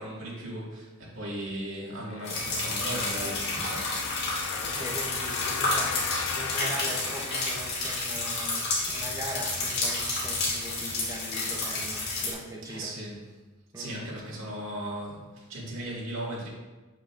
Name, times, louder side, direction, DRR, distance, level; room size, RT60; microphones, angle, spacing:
voice 1, 0.0-3.9 12.6-13.2 13.7-16.5, right 1 dB, 70° right, -6 dB, 2.2 m, -37 dB
sound 1, 2.1-8.0 8.6-8.7, left 8 dB, 80° left, 0.4 m, -38 dB
sound 2, 2.3-12.3, left 2 dB, 55° left, 2.2 m, -30 dB
voice 2, 4.6-12.9 13.7-14.0, equal, 15° right, -1 dB, 0.8 m, -40 dB
7.3 x 6.4 x 2.6 m, 1.2 s
head